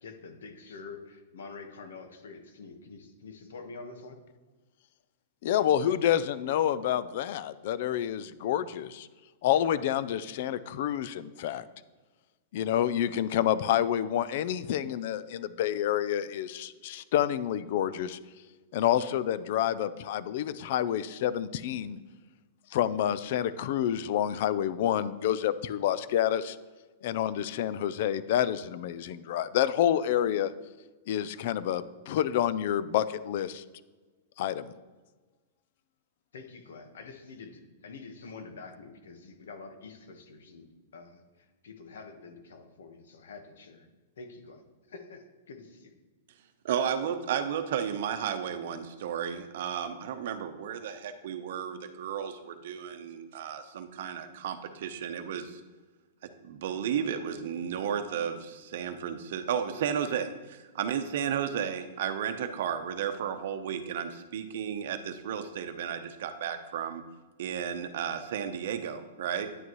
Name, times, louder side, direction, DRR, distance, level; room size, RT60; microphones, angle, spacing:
voice 1, 0.0-4.2 36.3-43.9 44.2-45.9, left 4 dB, 85° left, 5 dB, 1.4 m, -47 dB
voice 2, 5.4-9.1 9.4-11.6 12.5-18.2 18.7-22.0 22.7-26.6 27.0-30.5 31.1-33.6 34.4-34.7, left 10 dB, 55° left, 16 dB, 0.5 m, -28 dB
voice 3, 46.6-55.6 56.2-67.0 67.4-69.5, right 8 dB, 60° right, 9 dB, 0.9 m, -33 dB
9.8 x 9.8 x 3.1 m, 1.3 s
hypercardioid pair, 155°, 0 cm